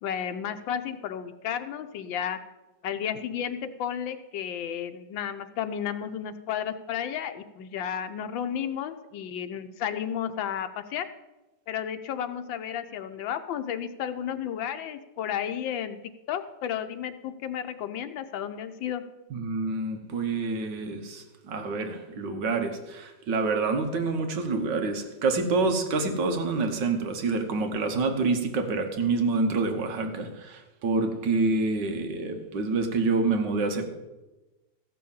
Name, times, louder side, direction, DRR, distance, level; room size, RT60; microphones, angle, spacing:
voice 1, 0.0-2.4 2.8-11.0 11.7-16.0 16.3-19.0, left 9 dB, 90° left, 9 dB, 1.5 m, -32 dB
voice 2, 19.3-33.9, right 3 dB, 70° right, 6 dB, 1.7 m, -27 dB
14.5 x 5.7 x 7.1 m, 1.1 s
omnidirectional pair, 2.0 m